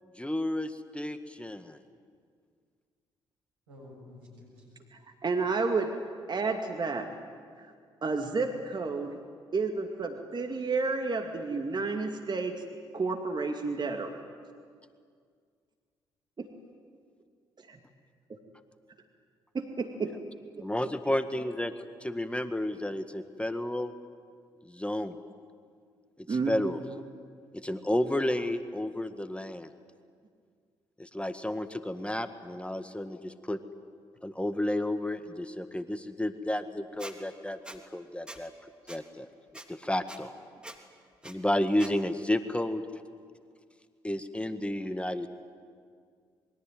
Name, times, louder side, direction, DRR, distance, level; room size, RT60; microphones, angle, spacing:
voice 1, 0.2-1.8 20.6-21.7 22.0-23.9 24.6-25.2 26.2-26.8 27.5-29.7 31.0-33.6 34.2-39.3 39.7-40.3 41.2-42.8 44.0-45.3, left 1 dB, 10° left, 10 dB, 1.7 m, -32 dB
voice 2, 3.7-4.8, left 1 dB, 85° right, -1 dB, 7.5 m, -51 dB
voice 3, 4.9-5.9 6.3-7.1 8.0-9.2 9.5-12.6 12.9-14.2 16.4-16.5 17.7-17.8 19.5-20.1 20.5-20.7 26.3-26.7, right 4 dB, 35° right, 4 dB, 2.4 m, -31 dB
Squeak, 37.0-37.1 37.7-37.8 38.3-38.4 38.9-39.0 39.5-39.7 40.1-40.2 40.6-40.8 41.2-41.3 41.8-41.9, right 1 dB, 10° right, 3.3 m, -43 dB
27.0 x 22.5 x 9.4 m, 2.1 s
hypercardioid pair, 45°, 12 cm